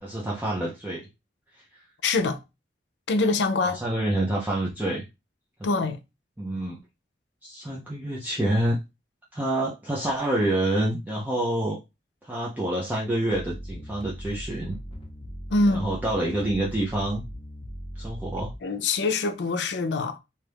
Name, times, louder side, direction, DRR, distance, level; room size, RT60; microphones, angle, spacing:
voice 1, 0.0-1.1 3.6-5.0 6.4-6.8 7.4-8.8 9.3-11.8 12.2-14.8 15.7-17.2 18.0-18.5, right 1 dB, 10° right, 0.5 m, -27 dB
voice 2, 2.0-2.4 3.1-3.8 5.6-6.0 15.5-15.8 18.6-20.2, left 3 dB, 70° left, 0.5 m, -24 dB
sound 1, 13.3-18.6, equal, 30° left, 0.7 m, -39 dB
2.7 x 2.4 x 3.3 m
head